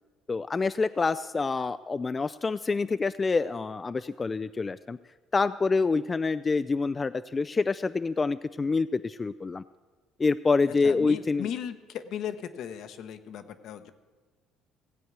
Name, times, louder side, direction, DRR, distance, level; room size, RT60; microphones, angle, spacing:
voice 1, 0.3-5.0 5.3-9.6 10.2-11.5, left 4 dB, 25° left, 13 dB, 0.3 m, -27 dB
voice 2, 10.6-13.9, left 9 dB, 70° left, 10 dB, 0.9 m, -37 dB
16.0 x 8.0 x 6.1 m, 1.4 s
supercardioid pair, 85°, 0 cm